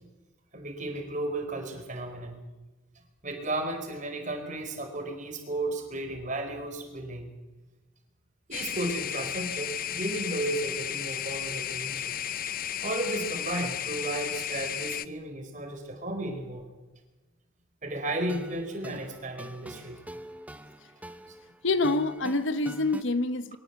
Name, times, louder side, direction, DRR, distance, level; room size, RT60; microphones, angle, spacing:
voice 1, 0.5-2.4 3.2-7.3 8.5-12.1 12.8-16.6 17.8-20.0, right 1 dB, 35° right, 4 dB, 4.6 m, -34 dB
sound 1, 8.5-15.0, left 10 dB, 40° left, 0.6 m, -34 dB
sound 2, 18.0-23.0, right 1 dB, 5° right, 0.9 m, -44 dB
voice 2, 21.6-23.6, left 2 dB, 60° left, 12 dB, 1.1 m, -26 dB
23.0 x 18.0 x 8.3 m, 1.1 s
head